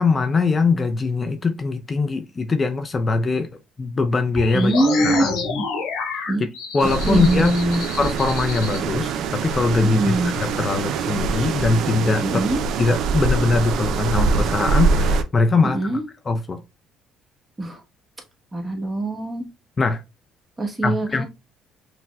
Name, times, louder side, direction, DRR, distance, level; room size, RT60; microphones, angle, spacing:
voice 1, 0.0-3.5 3.8-4.7 5.0-5.3 6.1-6.2 6.7-7.5 8.0-12.4 12.8-15.8 16.3-16.6 19.8-20.0 20.8-21.2, left 4 dB, 30° left, 0.4 m, -21 dB
sound 1, 4.4-8.8, left 4 dB, 85° left, 1.2 m, -28 dB
voice 2, 4.5-5.2 6.3-6.5 7.1-7.8 9.8-10.3 12.2-12.6 15.6-16.0 17.6-17.8 18.5-19.4 20.6-21.2, right 1 dB, 25° right, 1.1 m, -22 dB
sound 2, 6.8-15.2, right 4 dB, 70° right, 0.4 m, -24 dB
5.6 x 2.1 x 2.3 m
supercardioid pair, 85°, 0 cm